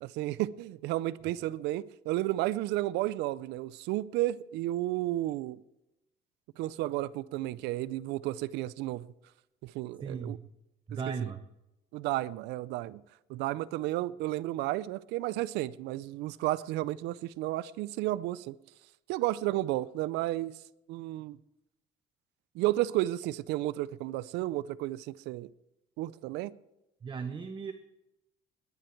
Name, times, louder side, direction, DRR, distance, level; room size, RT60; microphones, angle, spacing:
voice 1, 0.0-5.6 6.6-9.1 9.6-10.4 11.2-11.3 11.9-13.0 13.3-18.5 19.1-20.5 20.9-21.4 22.5-25.5 26.0-26.5, right 16 dB, 90° right, 0.5 m, -32 dB
voice 2, 10.0-10.4 10.9-11.4 27.0-27.7, right 6 dB, 30° right, 0.9 m, -36 dB
20.5 x 9.2 x 4.5 m
cardioid pair, 110°, 17 cm